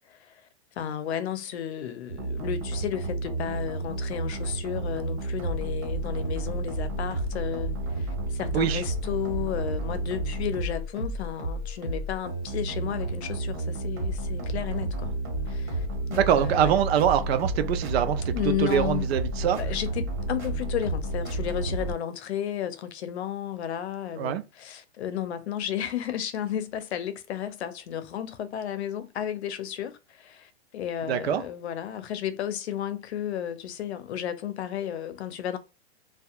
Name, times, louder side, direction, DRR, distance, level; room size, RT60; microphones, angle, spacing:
voice 1, 0.8-15.1 15.5-16.7 18.3-19.1 19.4-35.6, left 10 dB, 80° left, 0.6 m, -33 dB
sound 1, 2.1-21.9, right 2 dB, 40° right, 1.5 m, -31 dB
voice 2, 16.1-19.6 24.2-24.4 31.1-31.4, right 9 dB, 70° right, 0.6 m, -24 dB
2.7 x 2.3 x 2.4 m
hypercardioid pair, 130°, 33 cm